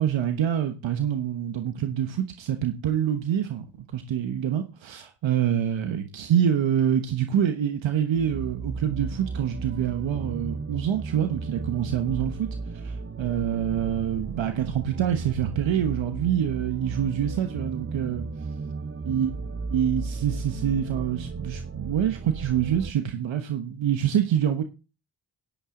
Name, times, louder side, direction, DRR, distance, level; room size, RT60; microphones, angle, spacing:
voice 1, 0.0-18.3 19.1-19.3 19.7-24.6, right 9 dB, 75° right, 1.2 m, -26 dB
sound 1, 8.1-22.9, right 4 dB, 25° right, 1.0 m, -35 dB
11.5 x 11.5 x 3.8 m
supercardioid pair, 55°, 46 cm